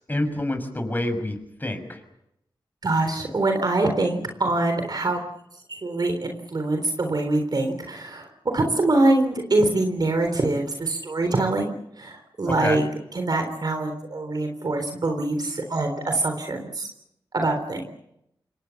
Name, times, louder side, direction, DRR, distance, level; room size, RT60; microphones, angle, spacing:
voice 1, 0.1-2.0 12.5-12.8, left 1 dB, 20° left, 7 dB, 6.3 m, -27 dB
voice 2, 2.8-5.2 5.7-8.3 8.5-12.8 13.1-16.9 17.3-17.9, right 2 dB, 55° right, 5 dB, 3.7 m, -24 dB
27.5 x 22.5 x 7.1 m, 0.81 s
cardioid pair, 65°, 8 cm